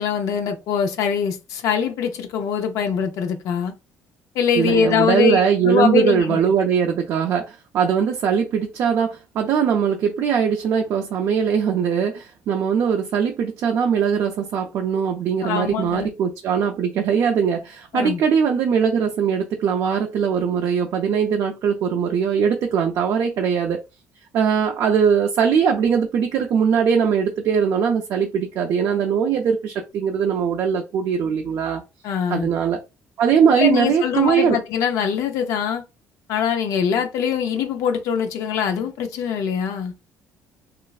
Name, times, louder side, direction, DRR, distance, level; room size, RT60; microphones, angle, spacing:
voice 1, 0.0-3.7 4.3-6.4 15.4-16.1 17.9-18.2 32.0-32.5 33.5-35.8 36.3-39.9, left 7 dB, 70° left, 0.5 m, -23 dB
voice 2, 4.5-23.8 24.3-31.8 32.3-32.8 33.2-34.6, right 7 dB, 55° right, 0.4 m, -21 dB
3.1 x 2.4 x 2.3 m
cardioid pair, 160°, 6 cm